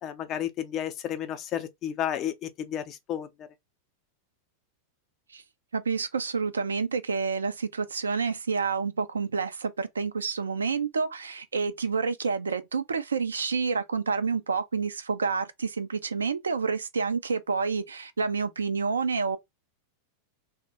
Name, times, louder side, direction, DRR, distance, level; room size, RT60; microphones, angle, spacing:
voice 1, 0.0-3.5, left 10 dB, 35° left, 0.5 m, -32 dB
voice 2, 5.7-19.4, right 5 dB, 70° right, 0.4 m, -29 dB
2.9 x 2.2 x 3.9 m
figure-of-eight pair, 90°, 0 cm